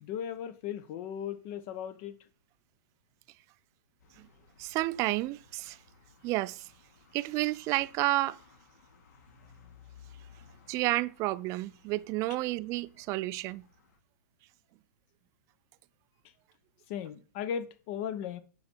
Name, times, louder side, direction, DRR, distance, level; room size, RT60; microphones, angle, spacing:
voice 1, 0.0-2.2 16.9-18.4, left 8 dB, 45° left, 1.0 m, -37 dB
sound 1, 4.0-14.0, left 6 dB, 65° left, 2.6 m, -59 dB
voice 2, 4.6-5.8 6.2-6.7 7.1-8.4 10.7-13.6, right 19 dB, 35° right, 0.4 m, -31 dB
7.5 x 5.7 x 4.5 m
hypercardioid pair, 130°, 10 cm